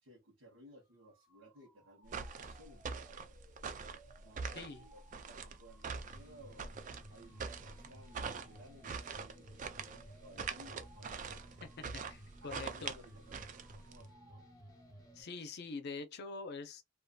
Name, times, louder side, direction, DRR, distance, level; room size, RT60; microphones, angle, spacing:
voice 1, 0.0-3.5 4.2-6.7 7.1-11.6 12.4-14.5, right 1 dB, 90° right, 1.0 m, -59 dB
sound 1, 0.9-15.5, right 1 dB, 15° right, 0.7 m, -65 dB
sound 2, 2.1-14.0, right 5 dB, 40° right, 0.4 m, -44 dB
sound 3, 6.1-15.2, equal, 20° left, 0.7 m, -57 dB
voice 2, 11.8-12.9 15.1-16.8, left 4 dB, 55° left, 0.5 m, -45 dB
2.6 x 2.4 x 2.2 m
head